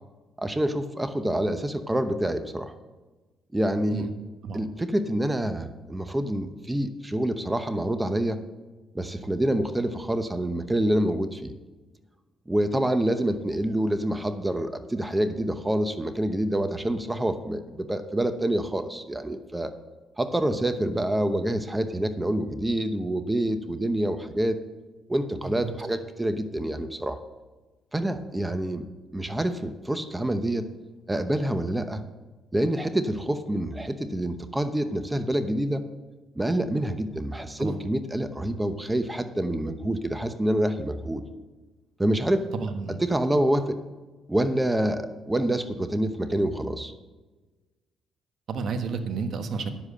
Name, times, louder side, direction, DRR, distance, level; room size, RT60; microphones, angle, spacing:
voice 1, 0.4-2.7 3.5-4.1 4.5-8.4 8.9-11.5 12.5-19.7 20.2-24.6 25.1-27.2 27.9-28.9 29.1-30.7 31.1-32.0 32.5-35.8 36.3-41.2 42.0-42.5 42.9-43.8 44.3-46.9, right 1 dB, 10° right, 10 dB, 0.8 m, -27 dB
voice 2, 42.5-43.0 48.5-49.7, right 5 dB, 60° right, 6 dB, 1.3 m, -31 dB
10.0 x 7.5 x 6.5 m, 1.2 s
cardioid pair, 90°, 0 cm